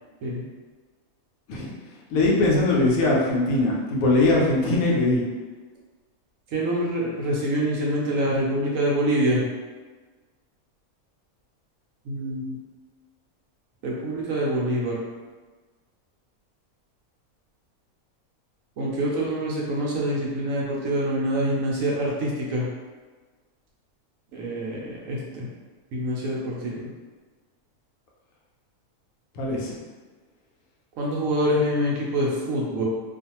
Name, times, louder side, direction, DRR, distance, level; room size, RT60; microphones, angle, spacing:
voice 1, 2.1-5.2 29.3-29.7, left 2 dB, 80° left, -3 dB, 1.0 m, -21 dB
voice 2, 6.5-9.4 12.0-12.6 13.8-15.0 18.8-22.7 24.3-25.5 25.9-26.9 31.0-32.8, right 1 dB, 70° right, -3 dB, 0.9 m, -25 dB
2.5 x 2.4 x 2.8 m, 1.3 s
omnidirectional pair, 1.5 m